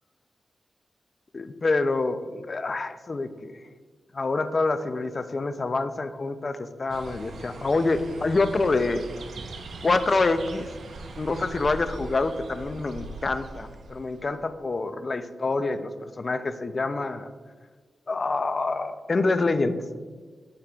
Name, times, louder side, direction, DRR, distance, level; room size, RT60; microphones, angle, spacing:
voice 1, 1.3-3.6 4.1-9.0 9.8-10.7 11.2-17.3 18.1-19.9, left 3 dB, 35° left, 10 dB, 0.3 m, -26 dB
sound 1, 6.9-14.5, right 3 dB, 70° right, 0.5 m, -41 dB
6.9 x 6.6 x 2.3 m, 1.5 s
wide cardioid pair, 155°, 0 cm